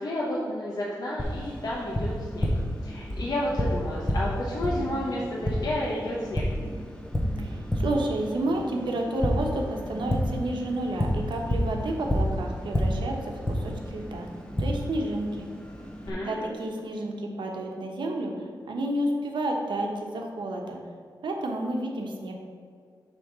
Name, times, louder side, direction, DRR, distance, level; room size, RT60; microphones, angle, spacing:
voice 1, 0.0-2.5 2.8-6.4 16.1-16.5, left 1 dB, 50° left, -5 dB, 0.9 m, -31 dB
Tap, 1.2-16.1, equal, 10° left, 0.7 m, -30 dB
voice 2, 7.4-14.3 14.6-15.5 16.1-18.3 18.7-20.8 21.2-22.3, right 1 dB, 80° right, 1 dB, 1.0 m, -30 dB
7.3 x 3.6 x 6.1 m, 2.2 s
wide cardioid pair, 175°, 8 cm